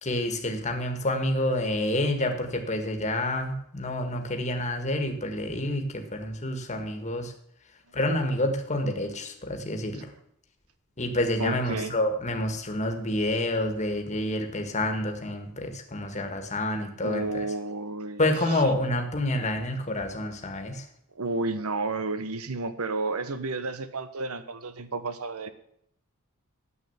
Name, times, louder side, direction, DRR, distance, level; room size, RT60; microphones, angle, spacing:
voice 1, 0.0-7.3 7.9-10.1 11.0-17.4 18.2-20.8, left 1 dB, 30° left, 5 dB, 1.7 m, -28 dB
voice 2, 11.4-12.0 17.0-18.6 21.1-25.5, right 3 dB, 80° right, 12 dB, 1.1 m, -32 dB
9.8 x 8.1 x 7.2 m, 0.72 s
head